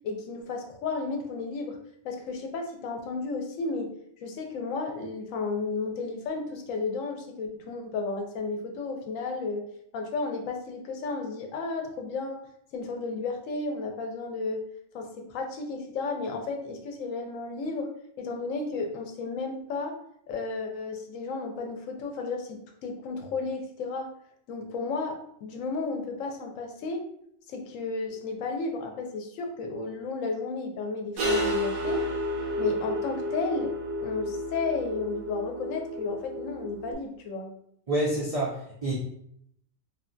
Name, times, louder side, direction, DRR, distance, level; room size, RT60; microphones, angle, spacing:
voice 1, 0.0-1.8 2.0-3.9 4.2-12.4 12.7-14.6 14.9-17.9 18.2-20.0 20.3-24.1 24.5-27.1 27.5-32.0 32.6-33.7 34.0-37.5, left 3 dB, 80° left, 3 dB, 1.0 m, -33 dB
sound 1, 31.2-36.9, left 1 dB, 85° right, 1.0 m, -31 dB
voice 2, 37.9-38.9, right 1 dB, 70° right, -5 dB, 0.3 m, -28 dB
3.0 x 2.2 x 2.5 m, 0.71 s
omnidirectional pair, 1.3 m